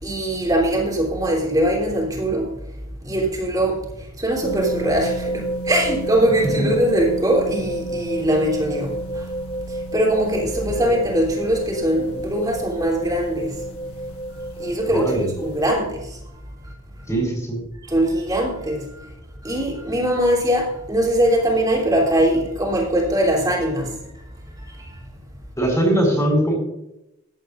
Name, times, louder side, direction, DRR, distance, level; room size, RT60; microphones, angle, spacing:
voice 1, 0.0-2.5 3.0-3.8 4.2-9.3 9.7-13.6 14.6-16.2 17.9-19.1 19.4-23.9 24.8-24.9, right 1 dB, 15° right, 3.2 m, -21 dB
sound 1, 4.4-15.7, right 1 dB, 80° left, 1.4 m, -30 dB
voice 2, 14.9-15.3 17.1-17.6 25.6-26.5, right 1 dB, 15° left, 4.2 m, -21 dB
15.5 x 10.5 x 2.6 m
head